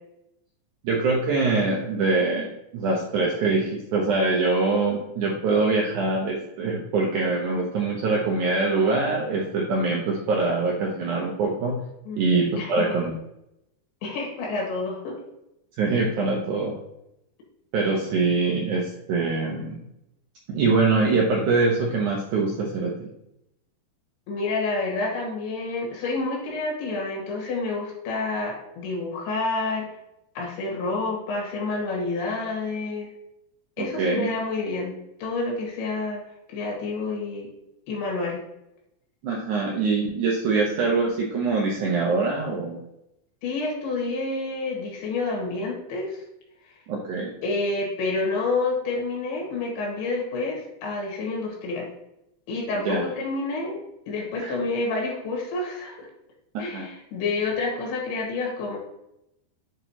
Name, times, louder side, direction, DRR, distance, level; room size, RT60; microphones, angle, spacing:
voice 1, 0.8-11.8 12.2-13.1 15.8-16.8 17.7-19.8 20.5-23.1 33.8-34.3 39.2-42.8 46.9-47.3 52.8-53.0 54.4-54.5 56.5-56.9, right 3 dB, 80° right, -1 dB, 1.7 m, -24 dB
voice 2, 12.6-13.0 14.0-15.2 24.3-29.9 30.4-33.1 33.8-36.2 36.5-37.5 37.9-38.4 43.4-46.2 47.4-51.9 52.5-56.1 56.6-58.8, left 3 dB, 85° left, -2 dB, 3.8 m, -29 dB
8.3 x 3.9 x 2.9 m, 0.83 s
omnidirectional pair, 4.5 m